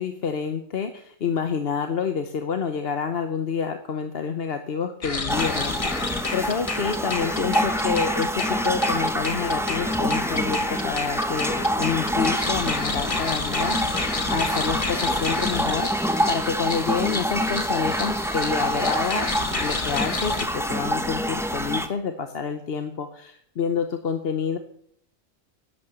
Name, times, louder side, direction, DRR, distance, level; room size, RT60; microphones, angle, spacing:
voice 1, 0.0-5.7 6.3-19.3 19.6-24.6, left 6 dB, 55° left, 7 dB, 1.1 m, -28 dB
sound 1, 5.0-20.4, left 3 dB, 30° left, 1.0 m, -30 dB
sound 2, 5.3-21.9, equal, 5° right, 0.7 m, -26 dB
11.0 x 9.5 x 7.0 m, 0.67 s
omnidirectional pair, 1.3 m